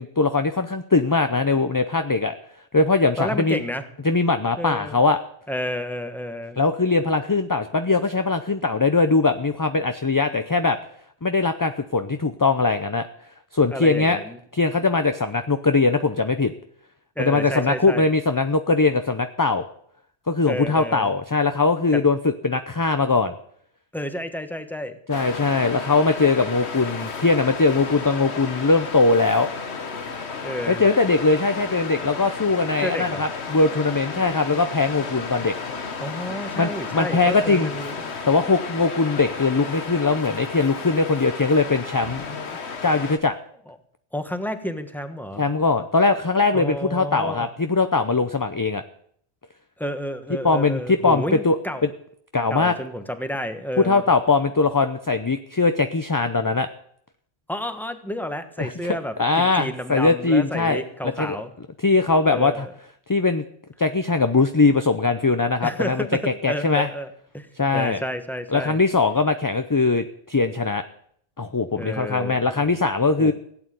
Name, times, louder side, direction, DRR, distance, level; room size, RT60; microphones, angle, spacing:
voice 1, 0.0-2.4 2.7-3.6 4.0-5.2 6.6-10.8 11.2-13.1 13.5-14.2 14.5-16.5 17.2-19.6 20.3-22.2 22.4-23.3 25.1-29.5 30.7-35.5 36.6-37.7 38.3-42.2 42.8-43.4 45.4-48.8 50.4-51.6 52.3-52.7 53.8-56.7 58.6-61.4 61.8-62.7 63.1-63.4 63.8-66.9 67.6-68.0 68.5-70.8 71.4-73.3, left 3 dB, 25° left, 9 dB, 0.6 m, -21 dB
voice 2, 3.2-3.8 4.6-5.0 5.5-6.6 13.7-14.4 17.2-18.1 20.5-21.1 21.9-22.0 23.9-25.0 30.4-30.9 32.8-33.2 36.0-38.2 43.7-43.8 44.1-45.4 46.5-47.5 49.8-51.8 52.5-54.0 57.5-61.5 62.3-62.7 65.6-67.5 67.7-68.8 71.7-72.8 73.2-73.3, equal, ahead, 8 dB, 1.3 m, -30 dB
Waves surf, 25.1-43.2, left 5 dB, 80° left, 1.6 m, -33 dB
16.5 x 8.7 x 9.3 m, 0.66 s
omnidirectional pair, 1.1 m